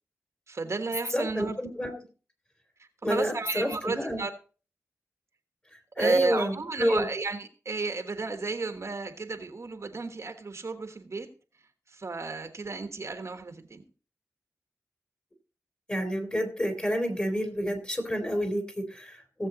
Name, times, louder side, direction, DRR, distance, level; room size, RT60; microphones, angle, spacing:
voice 1, 0.5-1.6 2.8-4.3 6.0-11.3 11.9-13.8, right 3 dB, 50° right, 7 dB, 1.3 m, -32 dB
voice 2, 1.1-2.0 3.0-4.2 5.7-7.0 15.9-19.5, equal, 20° left, 5 dB, 2.9 m, -29 dB
16.5 x 7.3 x 4.0 m, 0.37 s
wide cardioid pair, 90°, 6 cm